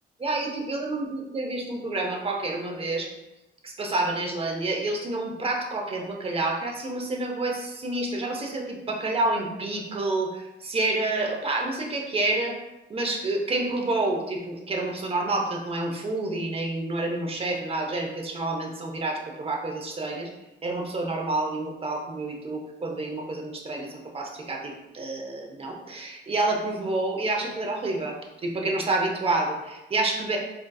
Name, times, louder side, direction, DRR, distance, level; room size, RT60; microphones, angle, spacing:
voice 1, 0.2-3.1 3.6-12.5 12.9-20.3 20.6-28.1 28.4-30.4, right 2 dB, 30° right, 1 dB, 0.7 m, -28 dB
3.7 x 2.6 x 2.2 m, 0.98 s
cardioid pair, 90°, 20 cm